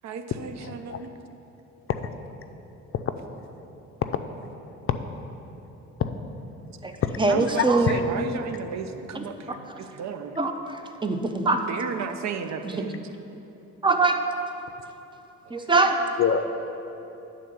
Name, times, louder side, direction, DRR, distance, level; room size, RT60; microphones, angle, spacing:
voice 1, 0.0-1.1 7.3-10.4 11.7-13.1, right 6 dB, 65° right, 8 dB, 0.6 m, -34 dB
voice 2, 0.6-1.0 1.9-2.0 2.9-3.0 4.0-4.2 4.9-5.0 6.0-6.1 7.0-7.2 7.6-7.7 16.2-16.4, left 8 dB, 45° left, 8 dB, 0.5 m, -25 dB
voice 3, 7.2-7.9 9.1-9.2 10.4-11.6 12.8-12.9 13.8-14.2 15.5-16.0, right 3 dB, 15° right, 6 dB, 0.6 m, -23 dB
10.0 x 3.8 x 6.8 m, 3.0 s
cardioid pair, 90°, 30 cm